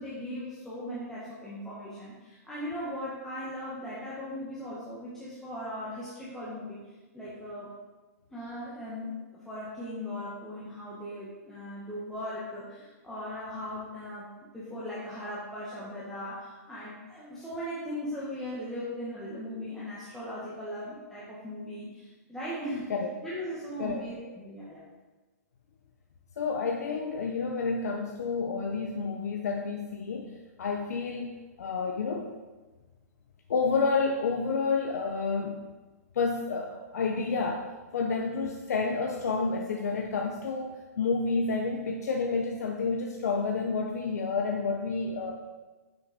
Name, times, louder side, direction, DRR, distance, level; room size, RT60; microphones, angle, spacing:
voice 1, 0.0-7.7 8.3-22.9 23.2-24.9, equal, 5° left, -9 dB, 1.8 m, -38 dB
voice 2, 26.4-30.3 30.6-32.3 33.5-35.6 36.1-37.7 37.9-45.3, left 4 dB, 75° left, 2 dB, 1.0 m, -29 dB
8.2 x 6.4 x 5.3 m, 1.2 s
hypercardioid pair, 145°, 9 cm